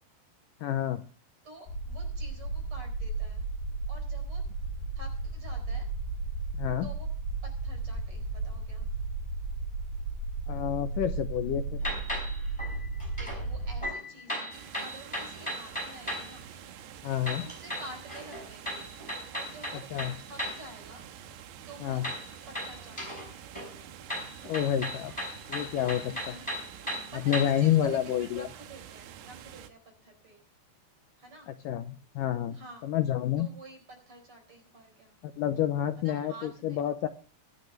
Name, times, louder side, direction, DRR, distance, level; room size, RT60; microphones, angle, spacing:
voice 1, 0.6-1.0 6.5-6.9 10.5-11.8 17.0-17.5 19.9-20.1 21.8-22.0 24.4-25.1 25.5-26.1 27.3-28.5 31.7-32.6 32.8-33.5 35.2-37.1, left 10 dB, 80° left, 8 dB, 1.9 m, -28 dB
voice 2, 1.4-3.4 3.9-4.4 4.9-5.9 6.8-7.1 7.4-8.9 13.1-16.5 17.3-18.9 19.3-19.9 20.3-21.1 21.7-22.1 22.5-23.2 26.1-26.5 26.8-30.4 31.2-31.5 32.5-32.9 33.4-33.8 34.1-35.1 36.0-36.8, right 2 dB, 35° right, 5 dB, 5.0 m, -49 dB
sound 1, 1.7-13.8, right 3 dB, 60° left, 5.6 m, -34 dB
sound 2, 11.8-13.4 13.8-16.4 17.2-20.7 22.0-23.3 23.5-27.7, equal, 5° left, 4.7 m, -37 dB
sound 3, 14.5-29.7, right 10 dB, 80° right, 3.2 m, -48 dB
24.0 x 9.2 x 3.2 m, 0.36 s
omnidirectional pair, 4.8 m